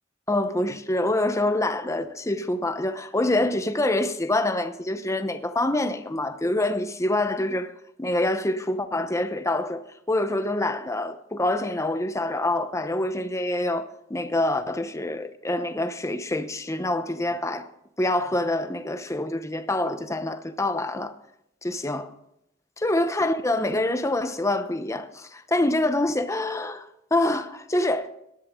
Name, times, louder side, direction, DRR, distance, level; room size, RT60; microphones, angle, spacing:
voice 1, 0.3-7.7 8.0-17.7 18.0-21.1 21.6-22.1 22.8-26.9 27.1-28.0, left 1 dB, 15° left, 0.9 m, -26 dB
18.5 x 11.5 x 3.8 m
head